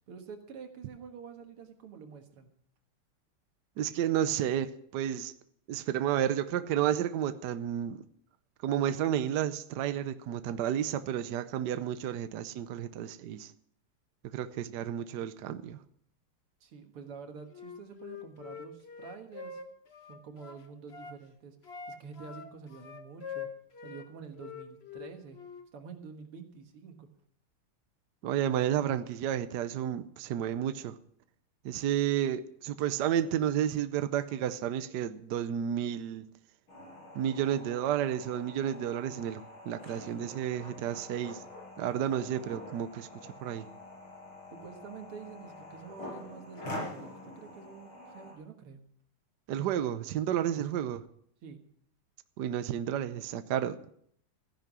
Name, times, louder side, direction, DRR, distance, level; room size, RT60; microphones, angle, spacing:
voice 1, 0.1-2.5 16.6-19.6 20.1-23.5 23.8-25.4 25.7-27.1 44.5-48.8 51.4-51.6, right 6 dB, 85° right, 2.5 m, -48 dB
voice 2, 3.8-5.3 5.7-8.0 8.6-13.5 14.3-15.8 28.2-31.0 31.6-36.3 37.1-41.4 41.8-43.7 49.5-51.0 52.4-53.9, right 10 dB, 65° right, 1.1 m, -31 dB
Wind instrument woodwind instrument, 17.5-21.2 21.6-24.1 24.3-25.7, left 6 dB, 40° left, 1.1 m, -44 dB
sound 1, 36.7-48.3, left 1 dB, 70° left, 6.1 m, -46 dB
15.0 x 10.5 x 6.1 m
omnidirectional pair, 2.4 m